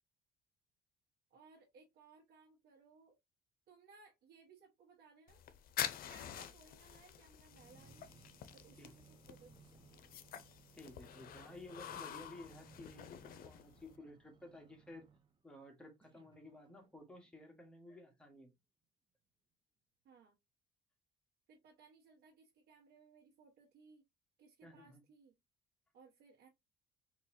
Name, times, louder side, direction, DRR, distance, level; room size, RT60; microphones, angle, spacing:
voice 1, 1.3-3.1 3.7-5.4 5.9-8.1 8.5-10.1 20.0-20.3 21.5-24.0 24.4-25.3 25.9-26.5, right 4 dB, 75° right, 1.5 m, -63 dB
sound 1, 5.3-14.0, left 10 dB, 60° left, 0.6 m, -47 dB
sound 2, 7.4-15.4 16.0-17.3 17.9-18.0, right 6 dB, 25° right, 0.6 m, -64 dB
voice 2, 10.8-15.1 15.4-18.5 24.6-25.0, left 2 dB, 5° left, 1.3 m, -54 dB
4.0 x 2.9 x 2.7 m
cardioid pair, 110°, 17 cm